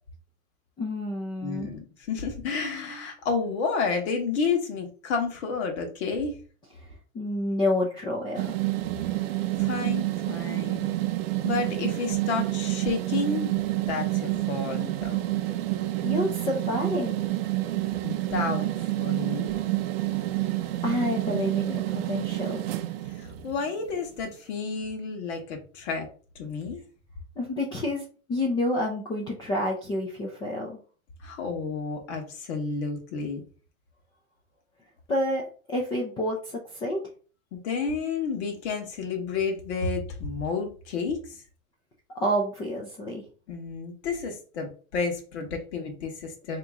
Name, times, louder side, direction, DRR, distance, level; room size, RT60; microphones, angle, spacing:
voice 1, 0.8-1.7 6.8-6.9 7.1-8.5 16.0-17.2 20.0-20.1 20.8-22.6 27.4-28.0 28.3-30.8 35.1-35.4 35.7-37.0 42.2-43.2, left 1 dB, 10° left, -2 dB, 0.4 m, -28 dB
voice 2, 1.4-6.3 9.6-10.9 11.4-13.5 13.9-15.2 18.0-18.7 19.0-19.4 23.1-26.1 26.3-26.8 31.2-33.4 37.5-41.4 43.5-46.6, left 4 dB, 55° left, 3 dB, 1.4 m, -31 dB
sound 1, 8.3-23.7, right 16 dB, 45° right, 0.5 m, -28 dB
4.0 x 3.0 x 3.6 m, 0.38 s
hypercardioid pair, 140°, 41 cm